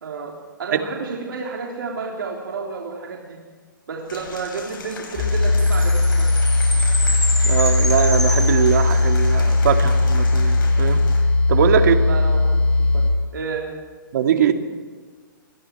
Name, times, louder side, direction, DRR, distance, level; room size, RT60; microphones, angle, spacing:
voice 1, 0.0-3.4 3.9-6.5 11.7-12.6 12.9-13.0 13.3-13.6, right 4 dB, 80° right, -2 dB, 3.6 m, -31 dB
Applause / Crowd, 4.1-11.2, left 4 dB, 80° left, 6.9 m, -37 dB
sound 1, 5.1-13.1, left 2 dB, 35° left, 5.4 m, -18 dB
Chime, 5.6-9.3, left 1 dB, 5° left, 4.0 m, -28 dB
voice 2, 7.4-11.0 11.5-12.0 14.1-14.5, right 8 dB, 60° right, 6 dB, 2.1 m, -21 dB
27.5 x 21.5 x 4.7 m, 1.4 s
hypercardioid pair, 145°, 11 cm